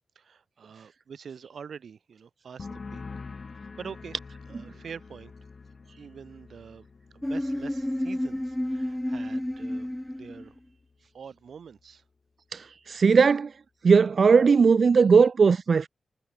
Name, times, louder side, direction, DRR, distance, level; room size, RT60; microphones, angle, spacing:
voice 1, 0.2-3.0 3.5-4.2 4.5-5.3 6.0-6.9 7.1-10.6 11.1-12.0, right 6 dB, 80° right, 7.7 m, -45 dB
sound 1, 2.6-10.0 10.3-10.9, left 4 dB, 50° left, 4.5 m, -46 dB
sound 2, 7.2-10.6, left 1 dB, 5° left, 4.0 m, -30 dB
voice 2, 12.5-13.5 13.8-15.9, right 5 dB, 60° right, 0.6 m, -19 dB
wide cardioid pair, 100°, 0 cm